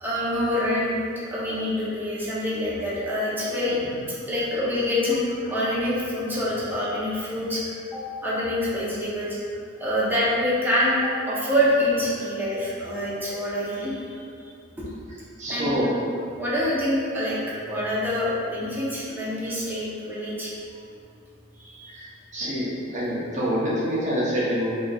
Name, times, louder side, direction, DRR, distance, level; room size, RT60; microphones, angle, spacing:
voice 1, 0.0-3.8 4.3-7.6 7.9-9.4 9.8-14.1 15.5-15.8 16.4-17.4 17.7-20.5 21.6-22.0, left 1 dB, 10° right, -8 dB, 0.7 m, -26 dB
voice 2, 15.4-15.9 21.9-22.1 22.3-24.7, equal, 40° right, -7 dB, 0.8 m, -26 dB
3.8 x 3.0 x 2.3 m, 2.3 s
head